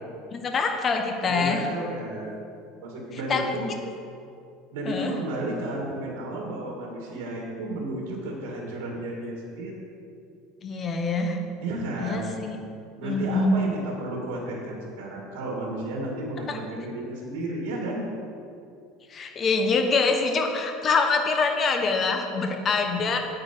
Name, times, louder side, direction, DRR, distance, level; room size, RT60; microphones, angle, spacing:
voice 1, 0.3-1.6 3.3-3.4 4.9-5.1 10.6-11.4 12.0-12.6 13.0-13.6 16.5-16.6 19.1-23.2, left 4 dB, 30° left, 4 dB, 1.0 m, -25 dB
voice 2, 1.2-2.4 2.8-3.7 4.7-9.9 11.6-12.3 13.0-18.0, right 1 dB, 85° right, -1 dB, 2.1 m, -33 dB
9.0 x 8.9 x 4.5 m, 2.5 s
cardioid pair, 145°, 0 cm